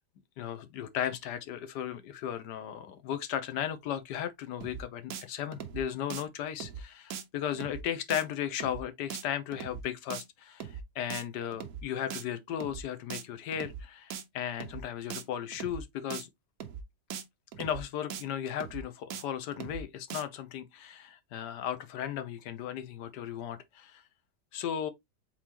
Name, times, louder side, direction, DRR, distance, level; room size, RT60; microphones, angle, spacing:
voice 1, 0.4-16.3 17.6-24.0 24.5-24.9, left 10 dB, 70° left, 1.2 m, -36 dB
sound 1, 4.6-4.8 5.1-5.2 5.5-5.8 6.1-6.2 6.6-6.8 7.1-7.2 7.5-7.8 8.1-8.2 8.6-8.8 9.1-9.2 9.5-9.8 10.1-10.2 10.6-10.8 11.1-11.2 11.5-11.8 12.1-12.2 12.6-12.8 13.1-13.2 13.5-13.8 14.1-14.2 14.6-14.8 15.1-15.2 15.5-15.8 16.1-16.2 16.6-16.8 17.1-17.2 17.5-17.8 18.1-18.2 18.6-18.8 19.1-19.2 19.5-19.8 20.1-20.2, right 8 dB, 65° right, 1.0 m, -40 dB
4.4 x 3.8 x 2.8 m
omnidirectional pair, 2.0 m